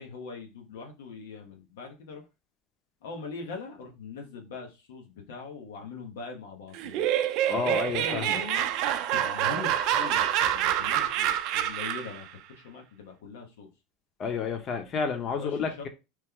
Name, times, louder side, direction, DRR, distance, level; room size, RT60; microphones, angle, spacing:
voice 1, 0.0-2.2 3.0-7.1 7.5-8.7 9.1-13.7 15.3-15.9, left 4 dB, 85° left, 0.8 m, -41 dB
Laughter, 6.7-12.2, right 11 dB, 60° right, 0.4 m, -27 dB
voice 2, 7.5-8.4 14.2-15.9, left 5 dB, 40° left, 0.7 m, -30 dB
3.0 x 2.1 x 3.6 m
supercardioid pair, 110°, 0 cm